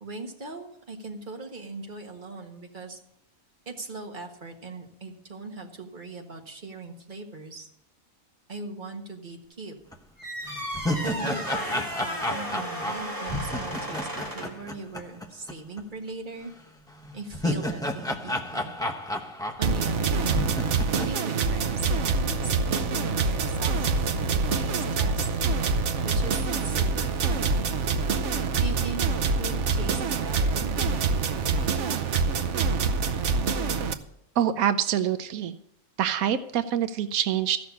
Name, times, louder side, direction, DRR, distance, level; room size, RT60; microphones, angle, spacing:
voice 1, 0.0-3.0 3.7-7.7 8.5-9.7 11.0-16.5 17.1-18.7 19.1-19.3 19.6-20.5 20.9-21.9 22.2-25.3 26.0-27.7 28.6-32.0, right 3 dB, 35° right, 2 dB, 1.7 m, -39 dB
sound 1, 9.9-10.0 10.5-15.5 15.8-15.9 17.0-20.0 20.3-21.1, left 1 dB, 5° left, 0.7 m, -32 dB
sound 2, 10.2-14.6, equal, 15° right, 2.3 m, -34 dB
sound 3, 19.6-33.9, right 4 dB, 65° right, 1.0 m, -25 dB
voice 2, 34.4-35.5 36.0-37.6, right 10 dB, 85° right, 11 dB, 1.1 m, -25 dB
14.5 x 6.2 x 8.3 m, 0.77 s
omnidirectional pair, 1.4 m